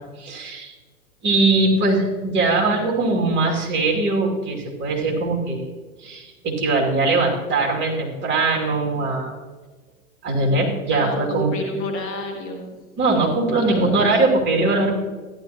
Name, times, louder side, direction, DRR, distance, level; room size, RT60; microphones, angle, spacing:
voice 1, 0.2-0.7 1.2-5.6 6.0-9.3 10.2-11.5 13.0-14.9, right 3 dB, 25° right, -1 dB, 2.6 m, -21 dB
voice 2, 10.9-12.7 13.7-14.1, left 2 dB, 30° left, 2 dB, 1.9 m, -29 dB
14.0 x 11.5 x 2.9 m, 1.4 s
hypercardioid pair, 120°, 44 cm